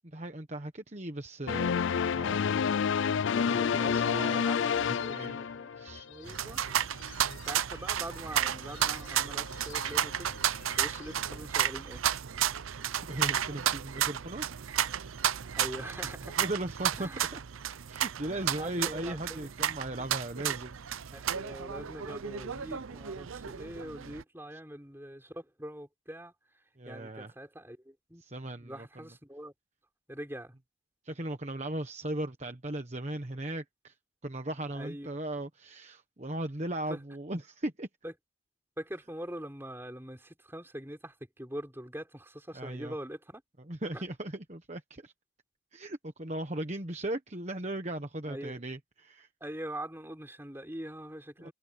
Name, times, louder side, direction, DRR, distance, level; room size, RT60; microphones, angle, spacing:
voice 1, 0.0-2.4 3.0-5.4 5.8-6.1 13.1-14.5 16.4-17.4 17.9-20.8 24.5-24.6 26.8-27.3 28.2-29.0 31.0-33.9 34.2-37.9 42.5-42.9 43.7-45.1 45.7-49.3 51.4-51.5, right 1 dB, 35° right, 1.2 m, -38 dB
sound 1, 1.5-5.9, left 7 dB, 65° left, 0.4 m, -28 dB
sound 2, 3.5-11.5, left 4 dB, 80° left, 7.5 m, -50 dB
voice 2, 3.6-5.7 6.1-6.6 7.4-10.4 10.8-12.0 15.5-16.4 17.0-17.3 18.5-19.4 21.1-26.3 26.8-28.2 28.6-29.5 30.1-30.5 34.7-35.1 36.9-37.0 38.0-38.1 38.8-43.4 43.9-44.0 48.3-48.6 49.4-51.5, right 1 dB, 10° right, 5.0 m, -43 dB
sound 3, 6.3-24.2, right 10 dB, 85° right, 0.6 m, -33 dB
open air
head